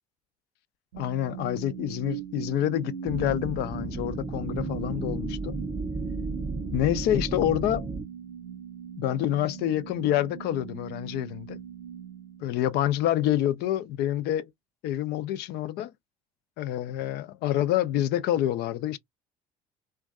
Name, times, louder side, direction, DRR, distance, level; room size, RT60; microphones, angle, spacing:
voice 1, 0.9-5.6 6.7-7.9 9.0-11.6 12.4-14.5 14.8-15.9 16.6-19.0, left 12 dB, 60° left, 0.4 m, -27 dB
sound 1, 0.9-13.1, right 7 dB, 90° right, 0.5 m, -40 dB
sound 2, 3.1-8.0, right 3 dB, 10° right, 0.4 m, -33 dB
2.5 x 2.3 x 2.4 m
hypercardioid pair, 65°, 19 cm